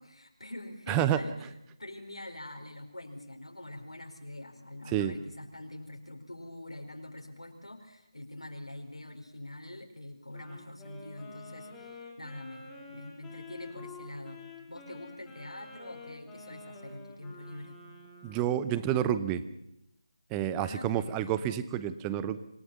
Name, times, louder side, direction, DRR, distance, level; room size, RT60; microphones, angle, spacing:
voice 1, 0.0-1.3 1.8-14.4 14.7-17.8 20.6-21.4, left 1 dB, 90° left, 3 dB, 4.3 m, -44 dB
voice 2, 0.9-1.2 4.9-5.1 18.2-19.4 20.3-22.4, right 10 dB, 10° right, 14 dB, 0.7 m, -29 dB
Wind instrument woodwind instrument, 10.3-18.6, left 3 dB, 5° left, 3.2 m, -49 dB
26.5 x 18.0 x 7.1 m, 0.84 s
figure-of-eight pair, 160°, 3 cm